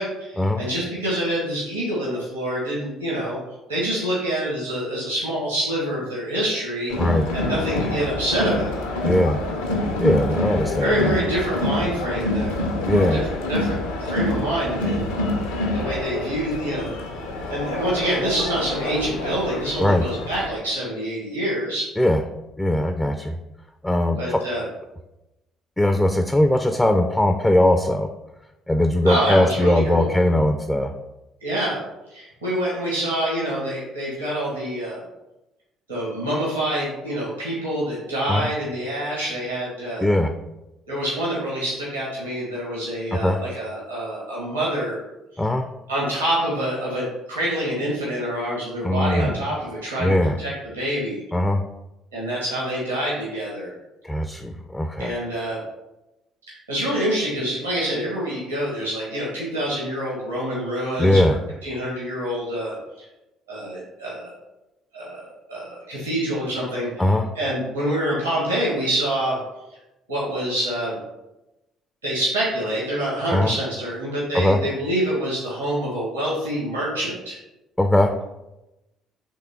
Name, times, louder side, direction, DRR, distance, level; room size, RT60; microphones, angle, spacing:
voice 1, 0.0-3.4 3.7-6.9 7.3-8.8 10.8-13.2 13.5-15.1 15.5-17.0 17.5-21.9 24.2-24.6 29.0-30.1 31.4-31.8 32.1-35.0 35.9-40.1 40.9-45.0 45.9-51.2 52.1-53.7 55.0-55.6 56.7-61.3 61.6-62.8 63.5-64.3 64.9-67.0 67.3-69.4 70.1-71.0 72.0-77.4, right 1 dB, 85° right, -7 dB, 1.4 m, -26 dB
Crowd, 6.9-20.5, left 2 dB, 75° left, 0.6 m, -27 dB
voice 2, 7.0-7.3 9.0-9.4 10.0-11.1 12.9-13.2 19.8-20.0 22.0-22.2 22.6-23.4 23.8-24.4 25.8-28.1 28.7-30.9 38.3-38.5 40.0-40.3 43.1-43.4 45.4-45.7 48.8-49.5 50.0-50.4 51.3-51.6 54.0-55.2 61.0-61.4 67.0-67.3 73.3-73.5 74.3-74.6 77.8-78.1, left 1 dB, 10° left, 6 dB, 0.4 m, -20 dB
3.6 x 3.3 x 4.3 m, 0.97 s
figure-of-eight pair, 50°, 0 cm